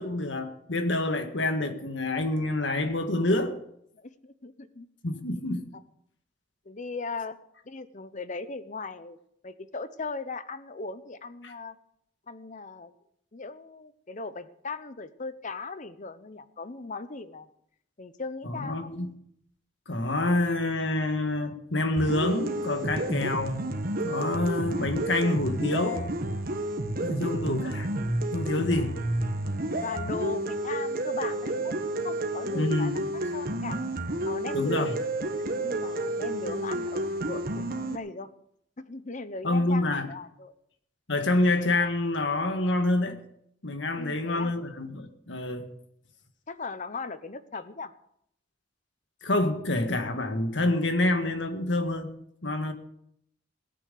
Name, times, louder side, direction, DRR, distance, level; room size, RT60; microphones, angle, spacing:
voice 1, 0.0-3.6 5.0-5.7 11.4-11.5 18.4-19.1 19.9-23.6 24.0-26.1 27.0-27.9 28.3-29.0 32.5-33.0 34.5-34.9 39.4-40.1 41.1-43.2 43.6-45.7 49.2-52.1 52.4-52.7, left 2 dB, 75° left, 1.7 m, -27 dB
voice 2, 4.0-4.9 6.6-7.4 7.6-9.2 9.4-11.8 12.3-12.9 13.3-17.5 18.0-18.8 26.9-27.4 29.0-29.1 29.8-31.7 32.0-32.9 33.3-33.8 34.2-34.9 35.6-38.3 38.8-40.5 44.0-44.5 46.5-47.9, left 4 dB, 45° left, 1.0 m, -38 dB
sound 1, 22.0-38.0, right 1 dB, 50° right, 1.4 m, -30 dB
18.0 x 9.2 x 6.9 m
head